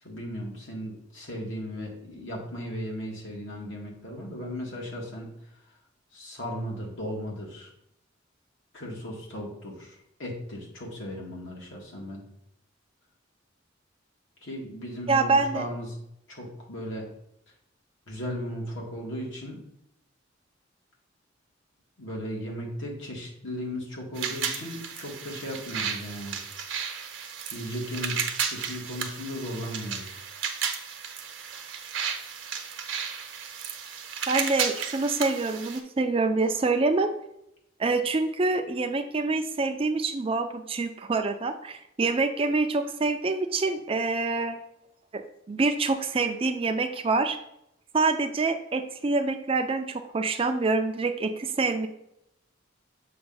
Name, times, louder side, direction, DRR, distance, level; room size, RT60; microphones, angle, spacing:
voice 1, 0.0-5.3 6.1-7.7 8.7-12.3 14.4-16.0 16.3-17.1 18.1-19.6 22.0-26.4 27.5-30.3, equal, 75° left, -1 dB, 1.8 m, -36 dB
voice 2, 15.1-15.7 34.3-37.1 37.8-44.6 45.1-45.2 45.5-47.4 47.9-51.9, right 3 dB, 30° right, 7 dB, 0.4 m, -26 dB
sound 1, 24.1-35.8, right 7 dB, 70° right, 0.8 m, -34 dB
6.8 x 2.5 x 5.4 m, 0.78 s
head